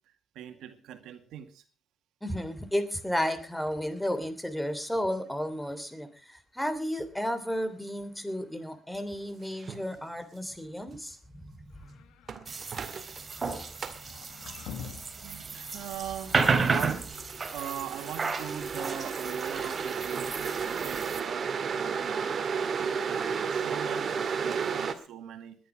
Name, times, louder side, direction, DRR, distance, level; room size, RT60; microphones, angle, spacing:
voice 1, 0.4-1.6 15.1-17.1 17.5-25.6, right 10 dB, 85° right, 8 dB, 2.0 m, -41 dB
voice 2, 2.2-11.9, equal, 5° left, 12 dB, 3.2 m, -33 dB
sound 1, 9.6-9.8 12.3-13.2 13.8-14.0 17.1-24.9, right 6 dB, 50° right, 2.1 m, -32 dB
sound 2, 11.7-12.6 14.0-15.3, left 7 dB, 90° left, 1.9 m, -44 dB
sound 3, 12.5-21.2, right 4 dB, 35° right, 3.2 m, -32 dB
20.0 x 11.0 x 5.0 m, 0.37 s
cardioid pair, 90°, 0 cm